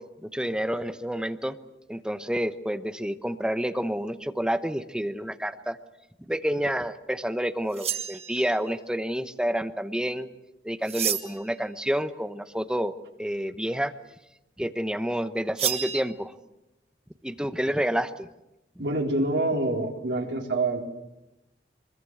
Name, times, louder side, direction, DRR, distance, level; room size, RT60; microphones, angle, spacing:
voice 1, 0.0-1.6 1.9-5.8 6.3-10.3 10.6-12.9 13.2-13.9 14.6-16.3 17.2-18.3, equal, 5° right, 10 dB, 0.9 m, -29 dB
sound 1, 7.7-8.7 10.8-11.5 15.6-16.0, right 9 dB, 35° right, 1.7 m, -30 dB
voice 2, 18.8-20.8, right 2 dB, 75° right, 1 dB, 3.9 m, -26 dB
23.5 x 22.0 x 8.0 m, 0.93 s
head